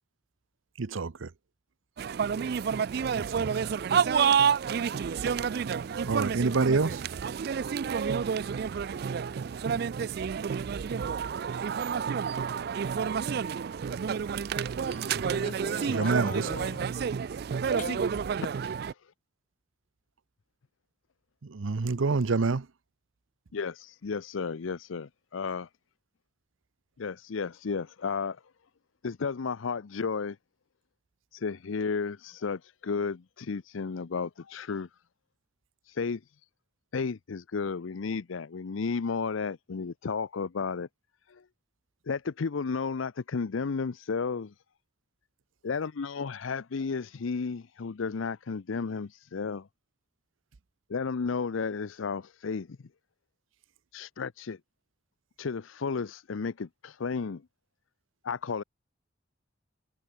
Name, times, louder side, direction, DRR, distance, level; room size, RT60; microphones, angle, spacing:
voice 1, 0.8-1.3 3.2-3.5 5.3-5.4 6.0-7.0 14.9-15.2 15.9-16.5 21.4-22.7, right 4 dB, 85° right, 0.7 m, -28 dB
sound 1, 2.0-18.9, right 7 dB, 50° right, 0.3 m, -29 dB
voice 2, 14.8-17.0 17.6-18.1, left 3 dB, 40° left, 1.1 m, -41 dB
voice 3, 23.5-25.7 27.0-28.4 29.0-30.4 31.3-34.9 36.0-36.2 36.9-40.9 41.3-41.4 42.1-44.5 45.6-49.7 50.9-52.8 53.9-54.6 55.4-57.4 58.2-58.6, left 5 dB, 85° left, 0.6 m, -33 dB
head